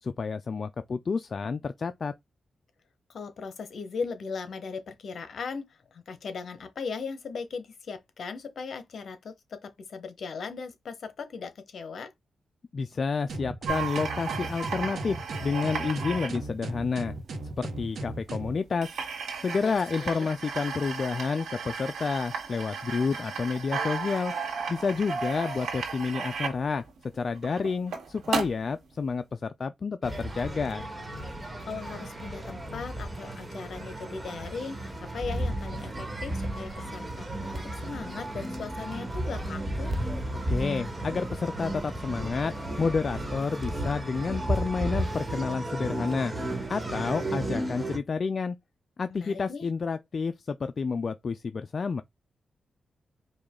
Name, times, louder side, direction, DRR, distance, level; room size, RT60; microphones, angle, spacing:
voice 1, 0.0-2.1 12.7-17.1 17.6-18.9 19.4-24.3 24.7-26.8 27.1-30.8 40.5-46.3 46.7-48.6 49.0-52.0, left 5 dB, 50° left, 0.4 m, -30 dB
voice 2, 3.1-12.1 19.6-20.3 31.7-39.9 49.1-49.7, left 5 dB, 70° left, 0.9 m, -38 dB
sound 1, 13.3-18.6, right 2 dB, 75° right, 1.0 m, -37 dB
sound 2, 13.7-17.3 18.2-18.3 18.5-18.6 18.8-28.8, right 5 dB, 90° right, 1.5 m, -34 dB
sound 3, 30.0-48.0, right 1 dB, 20° right, 1.3 m, -34 dB
4.9 x 2.3 x 3.6 m
cardioid pair, 85°, 0 cm